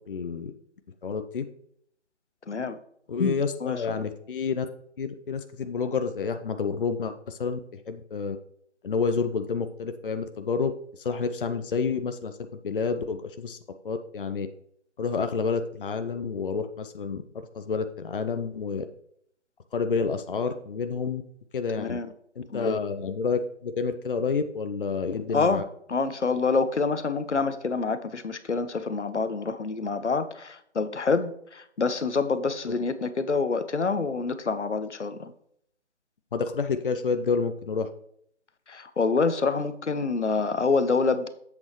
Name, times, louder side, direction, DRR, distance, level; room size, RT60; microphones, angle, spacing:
voice 1, 0.1-0.5 1.0-1.4 3.1-4.7 5.0-8.4 8.8-12.4 12.6-13.6 13.8-14.5 15.0-17.2 17.5-18.8 19.7-21.2 21.5-22.0 22.4-25.6 36.3-37.9, left 5 dB, 50° left, 0.7 m, -29 dB
voice 2, 2.5-2.8 3.2-3.3 3.6-4.0 21.8-22.1 22.5-22.8 25.3-25.6 25.9-35.3 38.7-41.3, left 4 dB, 80° left, 0.9 m, -27 dB
7.9 x 7.2 x 3.1 m
figure-of-eight pair, 150°, 34 cm